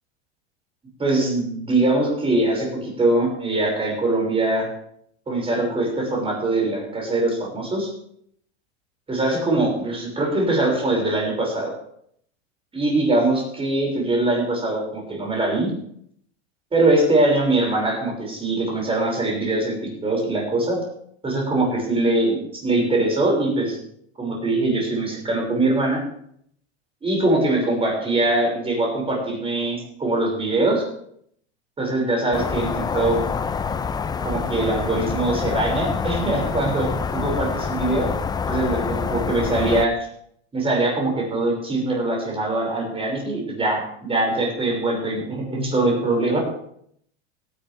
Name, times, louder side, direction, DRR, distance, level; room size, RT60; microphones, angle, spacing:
voice 1, 1.0-4.7 5.3-7.9 9.1-11.7 12.7-15.7 16.7-20.8 21.2-23.8 24.2-26.0 27.0-30.8 31.8-33.2 34.2-38.1 38.5-40.0 40.5-46.4, right 2 dB, 15° right, 0 dB, 6.1 m, -22 dB
sound 1, 32.3-39.9, left 6 dB, 10° left, 0.5 m, -26 dB
17.0 x 11.5 x 3.5 m, 0.68 s
supercardioid pair, 125°, 33 cm